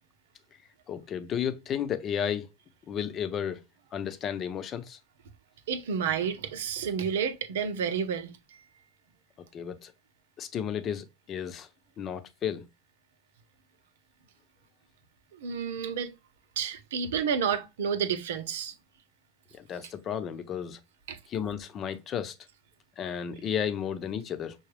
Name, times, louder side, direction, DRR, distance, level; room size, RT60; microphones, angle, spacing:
voice 1, 0.9-2.5 2.9-3.6 3.9-5.0 9.5-9.9 10.4-11.7 12.0-12.6 19.5-20.8 21.3-22.3 23.0-24.5, left 8 dB, 35° left, 0.7 m, -33 dB
voice 2, 5.7-8.3 15.3-16.1 16.6-18.7 21.1-21.2, right 7 dB, 80° right, 0.8 m, -30 dB
5.9 x 2.3 x 3.3 m
hypercardioid pair, 105°, 0 cm